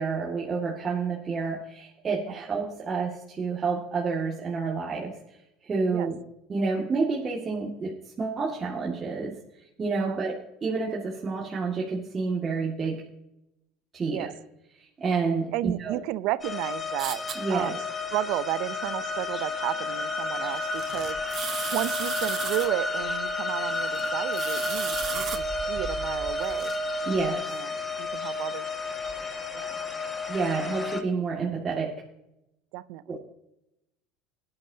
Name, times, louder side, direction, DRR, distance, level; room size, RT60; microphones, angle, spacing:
voice 1, 0.0-5.4 5.6-6.2 6.5-13.0 13.9-14.3 14.8-16.0 17.4-17.8 27.0-27.5 30.3-31.9 33.1-33.3, right 4 dB, 30° right, -3 dB, 2.1 m, -29 dB
voice 2, 15.5-17.2 17.5-17.8 18.1-21.2 21.7-26.7 27.5-27.7 28.0-28.7 29.5-29.7 32.7-33.2, right 16 dB, 65° right, 17 dB, 0.6 m, -32 dB
sound 1, 16.4-31.0, left 3 dB, 20° left, 1.7 m, -31 dB
sound 2, 17.0-17.3 20.4-22.7 23.6-25.4 26.0-26.8, right 9 dB, 45° right, 1.4 m, -36 dB
18.0 x 11.0 x 2.8 m, 0.87 s
supercardioid pair, 100°, 0 cm